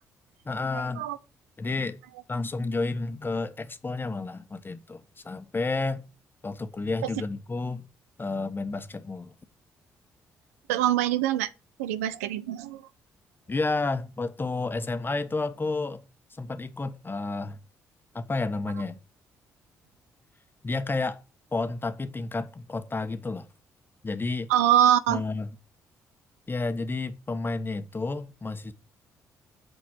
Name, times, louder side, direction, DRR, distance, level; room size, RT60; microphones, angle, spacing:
voice 1, 0.4-1.0 1.6-2.0 2.3-6.0 6.4-7.8 8.2-9.4 13.5-16.0 16.3-17.6 18.1-19.0 20.6-21.2 21.5-23.5 24.0-24.5 25.1-25.5 26.5-28.7, left 3 dB, 30° left, 1.3 m, -31 dB
voice 2, 10.7-11.5 11.8-12.8 24.5-25.2, right 11 dB, 90° right, 0.5 m, -23 dB
8.6 x 5.3 x 7.8 m
hypercardioid pair, 45°, 8 cm